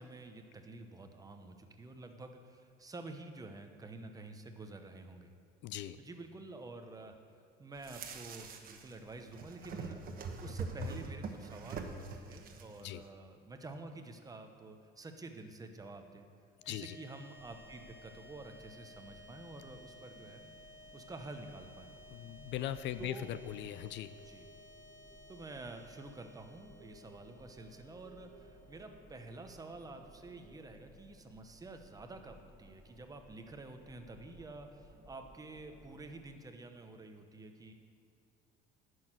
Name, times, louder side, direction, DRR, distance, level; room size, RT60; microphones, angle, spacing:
voice 1, 0.0-5.3 6.0-7.2 7.6-16.3 16.7-20.4 20.9-21.9 23.0-23.3 24.2-24.5 25.3-37.7, right 2 dB, 15° right, 6 dB, 0.9 m, -49 dB
voice 2, 5.6-6.0 12.8-13.0 16.7-17.0 22.1-24.2, left 12 dB, 60° left, 14 dB, 0.5 m, -40 dB
sound 1, 7.8-8.9 9.2-12.8, right 3 dB, 45° right, 1.1 m, -43 dB
sound 2, 16.6-31.0, left 1 dB, 30° left, 3.5 m, -58 dB
sound 3, 17.4-36.2, right 1 dB, ahead, 2.9 m, -60 dB
10.5 x 6.4 x 8.9 m, 2.4 s
cardioid pair, 135°, 21 cm